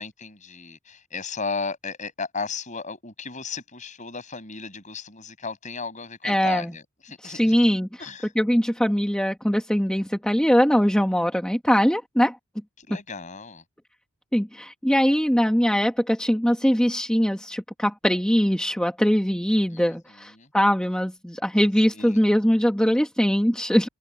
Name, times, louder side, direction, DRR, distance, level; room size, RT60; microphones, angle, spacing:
voice 1, 0.0-7.6 8.0-8.3 12.8-13.6 19.7-20.5 21.9-22.2, left 4 dB, 35° left, 7.8 m, -35 dB
voice 2, 6.2-6.7 7.2-8.1 8.3-12.4 14.3-23.9, equal, 5° left, 1.6 m, -22 dB
head